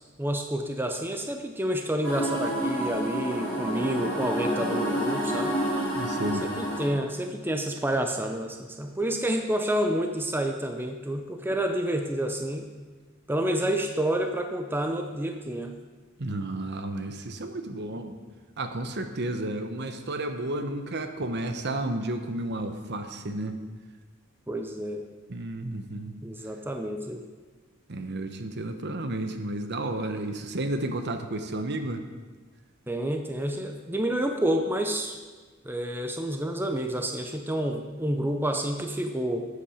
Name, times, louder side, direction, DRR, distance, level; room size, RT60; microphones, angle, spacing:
voice 1, 0.2-5.6 6.4-12.7 13.3-15.7 24.5-25.0 26.2-27.2 32.9-35.2 35.6-39.5, right 1 dB, 10° right, 5 dB, 0.6 m, -29 dB
sound 1, 2.0-6.9, equal, 5° left, 4.3 m, -29 dB
voice 2, 5.9-6.5 16.2-18.2 18.6-23.6 25.3-26.2 27.9-32.0, right 1 dB, 55° right, 7 dB, 0.9 m, -32 dB
12.5 x 8.5 x 5.0 m, 1.4 s
head